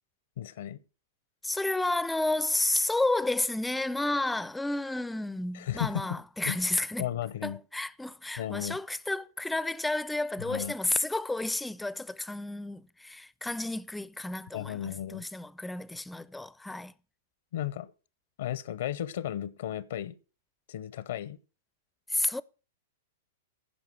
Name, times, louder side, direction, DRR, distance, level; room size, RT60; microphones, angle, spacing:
voice 1, 0.4-0.8 5.5-6.0 6.5-6.6 7.0-7.6 8.4-8.8 10.4-10.7 14.5-15.2 17.5-17.9 18.4-20.1 20.7-21.4, left 11 dB, 65° left, 0.6 m, -34 dB
voice 2, 1.4-7.1 7.4-16.9 22.1-22.4, left 2 dB, 5° left, 0.4 m, -31 dB
15.5 x 5.3 x 4.7 m
hypercardioid pair, 105°, 0 cm